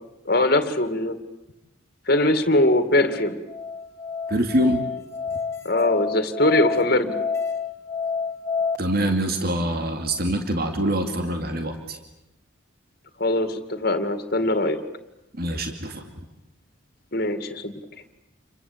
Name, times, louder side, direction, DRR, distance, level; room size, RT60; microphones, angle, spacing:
voice 1, 0.3-1.2 2.1-3.4 5.6-7.2 13.2-14.8 17.1-17.7, left 1 dB, 50° left, 9 dB, 2.4 m, -21 dB
Musical instrument, 3.1-8.8, left 5 dB, 15° left, 2.4 m, -29 dB
voice 2, 4.3-4.8 8.8-12.0 15.4-16.0, right 1 dB, 50° right, 5 dB, 2.6 m, -24 dB
29.0 x 23.5 x 8.8 m, 0.90 s
head